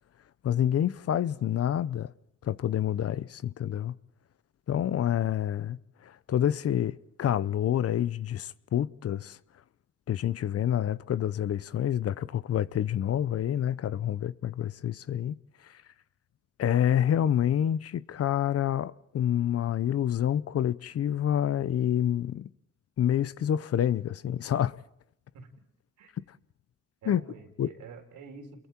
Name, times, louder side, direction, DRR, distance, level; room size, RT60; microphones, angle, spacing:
voice 1, 0.4-2.1 2.4-3.9 4.7-9.4 10.1-15.4 15.6-15.8 16.6-22.5 23.0-24.8 27.1-27.2 27.6-27.7, left 10 dB, 55° left, 0.7 m, -28 dB
voice 2, 27.0-28.7, right 5 dB, 80° right, 3.9 m, -47 dB
29.5 x 22.0 x 4.5 m
cardioid pair, 90°, 30 cm